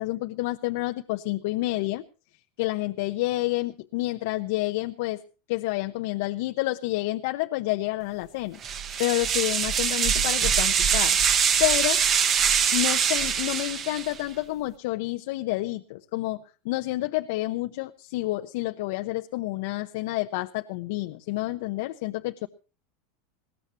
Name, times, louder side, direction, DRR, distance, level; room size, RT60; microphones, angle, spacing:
voice 1, 0.0-2.0 2.6-5.2 5.5-8.6 9.0-11.2 11.6-12.0 12.7-22.5, left 18 dB, 70° left, 6 dB, 0.9 m, -29 dB
sound 1, 8.6-14.2, right 7 dB, 35° right, 1.5 m, -23 dB
21.0 x 17.5 x 3.0 m, 0.34 s
supercardioid pair, 125°, 0 cm